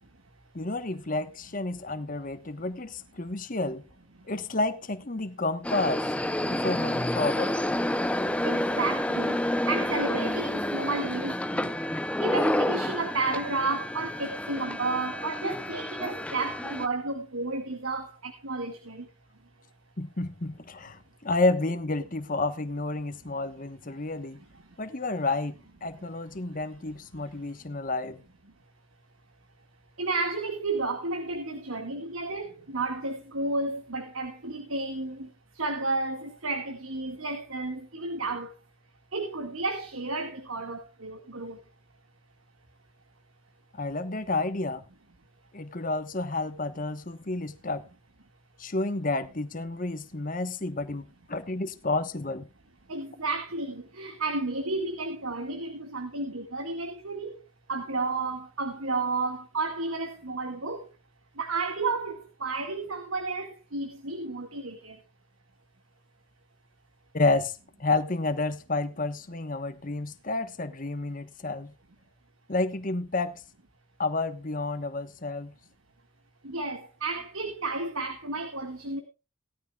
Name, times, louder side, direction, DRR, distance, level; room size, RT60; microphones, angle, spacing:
voice 1, 0.5-3.8 4.3-6.1 6.4-7.6 20.0-24.4 24.8-28.2 43.8-44.8 45.5-47.8 48.6-52.5 67.1-71.7 72.5-73.4 74.0-75.5, left 2 dB, 40° left, 1.1 m, -30 dB
sound 1, 5.6-16.9, left 1 dB, 5° left, 0.5 m, -29 dB
voice 2, 8.4-11.8 12.2-19.1 23.9-24.8 26.5-26.6 27.2-27.5 30.0-38.5 39.1-41.6 52.9-57.4 57.7-60.9 61.4-65.0 76.4-79.0, right 3 dB, 75° right, 1.9 m, -32 dB
18.0 x 13.0 x 2.3 m
head